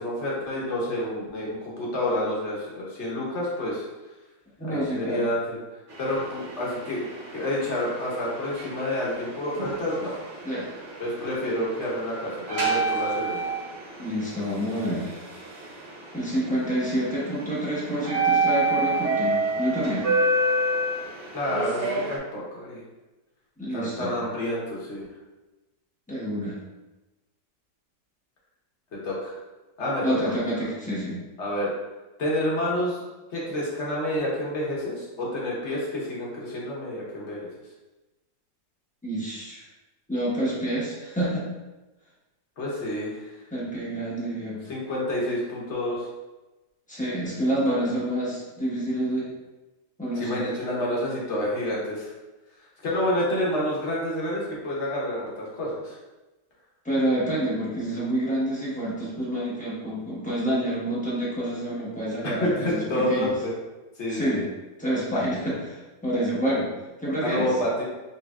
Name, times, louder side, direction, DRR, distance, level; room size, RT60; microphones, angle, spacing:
voice 1, 0.0-3.8 4.6-5.6 6.0-7.0 7.3-10.1 11.0-13.6 21.3-22.8 23.7-25.1 29.0-29.4 29.8-30.4 31.4-31.7 32.2-33.0 33.3-37.5 42.6-43.3 44.7-46.1 50.2-52.1 52.8-56.0 62.2-63.5 64.0-64.5 67.2-67.8, left 1 dB, 45° left, -5 dB, 1.2 m, -28 dB
voice 2, 4.6-5.2 10.4-10.7 14.0-15.1 16.1-20.1 23.6-24.1 26.1-26.6 30.0-31.2 39.0-39.6 40.1-41.5 43.5-44.6 46.9-49.3 50.0-50.4 56.8-63.3 64.1-64.4 64.8-66.7 67.0-67.5, right 1 dB, 5° left, -7 dB, 0.7 m, -28 dB
sound 1, 5.9-22.2, right 2 dB, 55° right, 0.9 m, -29 dB
4.8 x 3.2 x 2.3 m, 1.1 s
omnidirectional pair, 1.8 m